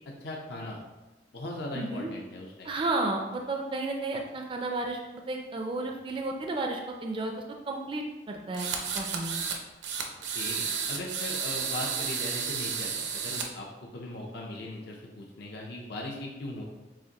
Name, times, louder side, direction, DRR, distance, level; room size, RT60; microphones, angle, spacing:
voice 1, 0.2-0.8 1.3-2.7 10.3-13.7 13.9-16.6, left 1 dB, 65° left, -1 dB, 0.6 m, -39 dB
voice 2, 1.7-2.1 2.6-5.0 5.3-8.7 8.9-9.3, right 2 dB, 30° right, 2 dB, 0.4 m, -32 dB
sound 1, 8.5-9.6 9.8-13.5, right 6 dB, 75° right, 0.6 m, -32 dB
7.3 x 2.5 x 2.8 m, 1.1 s
head